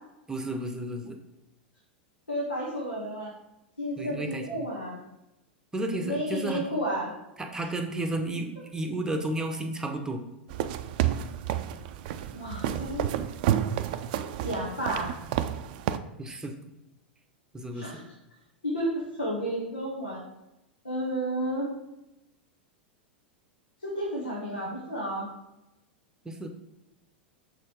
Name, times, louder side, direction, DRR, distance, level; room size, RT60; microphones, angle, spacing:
voice 1, 0.3-1.2 4.0-4.7 5.7-6.6 7.4-10.2 16.2-16.5 17.5-18.0 26.2-26.5, right 1 dB, 10° right, 5 dB, 0.9 m, -32 dB
voice 2, 2.3-3.3 3.8-5.0 6.0-7.1 12.3-13.1 14.4-15.1 17.7-18.0 18.6-20.2 20.8-21.7 23.8-25.3, equal, 85° left, -5 dB, 1.9 m, -31 dB
sound 1, 10.5-16.0, right 11 dB, 50° right, 0.4 m, -30 dB
6.6 x 4.4 x 5.1 m, 0.92 s
figure-of-eight pair, 90°, 6 cm